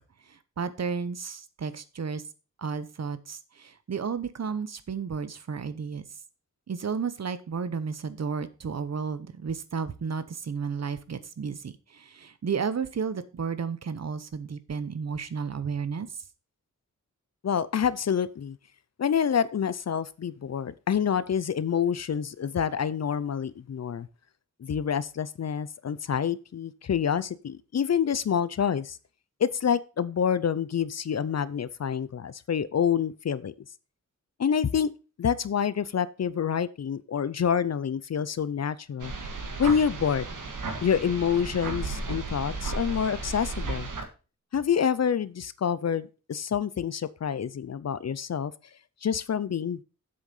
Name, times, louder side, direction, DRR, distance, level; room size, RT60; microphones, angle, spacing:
voice 1, 0.6-2.2 2.6-6.0 6.7-16.1, right 6 dB, 55° right, 13 dB, 0.9 m, -32 dB
voice 2, 17.4-18.6 19.0-24.1 24.6-29.0 29.4-33.5 34.4-34.9 35.2-39.1 39.6-40.3 40.8-43.9 44.5-48.5 49.0-49.8, left 7 dB, 55° left, 17 dB, 0.6 m, -27 dB
sound 1, 39.0-44.0, right 3 dB, 85° right, 1.7 m, -34 dB
7.9 x 6.5 x 5.4 m, 0.33 s
wide cardioid pair, 120°, 31 cm